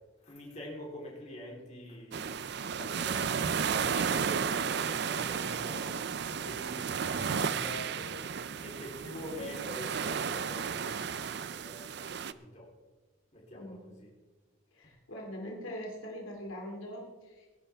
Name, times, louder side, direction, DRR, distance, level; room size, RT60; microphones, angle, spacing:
voice 1, 0.2-2.3 2.5-6.0 6.3-8.2 8.6-12.7 13.3-14.1, equal, 35° left, -3 dB, 3.7 m, -45 dB
sound 1, 2.1-12.3, right 6 dB, 55° right, 0.5 m, -33 dB
voice 2, 14.7-17.5, equal, 75° left, 0 dB, 2.6 m, -42 dB
20.0 x 11.0 x 3.5 m, 1.2 s
head